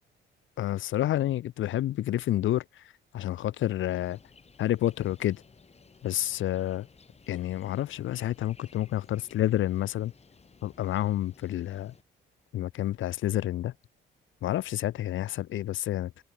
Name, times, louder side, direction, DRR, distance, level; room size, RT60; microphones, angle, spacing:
voice 1, 0.6-4.2 4.6-5.4 6.0-6.9 7.3-10.1 10.6-12.0 12.5-13.7 14.4-16.2, left 13 dB, 75° left, 2.0 m, -29 dB
sound 1, 3.8-12.0, left 4 dB, 30° left, 6.8 m, -57 dB
cardioid pair, 90°, 20 cm